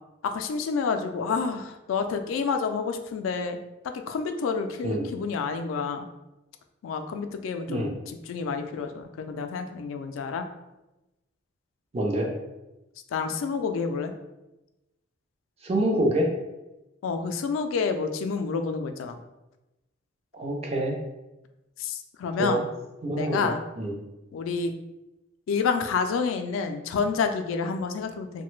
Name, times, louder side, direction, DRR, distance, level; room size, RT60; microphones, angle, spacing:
voice 1, 0.2-3.6 3.9-6.1 6.8-7.9 8.3-10.4 13.1-14.1 17.0-19.2 21.8-22.6 23.1-23.6 24.3-24.7 25.5-28.4, left 5 dB, 90° left, 7 dB, 0.3 m, -29 dB
voice 2, 11.9-12.3 15.6-16.3 20.3-21.0 22.4-22.6 23.0-23.9, right 1 dB, 30° right, 0 dB, 0.5 m, -26 dB
3.1 x 2.1 x 3.0 m, 0.99 s
head